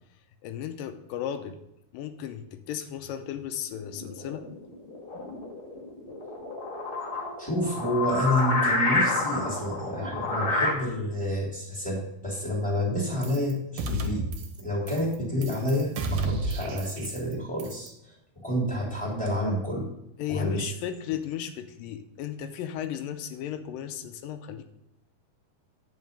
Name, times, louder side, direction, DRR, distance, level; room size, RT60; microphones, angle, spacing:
voice 1, 0.4-1.6 1.9-4.5 20.2-24.6, left 9 dB, 85° left, 8 dB, 2.3 m, -35 dB
sound 1, 3.7-10.7, left 2 dB, 45° left, 2.5 m, -29 dB
voice 2, 7.4-14.2 14.6-18.1 18.4-19.9 20.3-20.7, left 1 dB, ahead, -5 dB, 2.6 m, -29 dB
sound 2, 13.2-13.5 13.8-14.6 14.9-15.2 15.4-17.3 17.6-17.9, right 2 dB, 80° right, 2.8 m, -31 dB
9.5 x 5.6 x 5.3 m, 0.81 s
omnidirectional pair, 3.9 m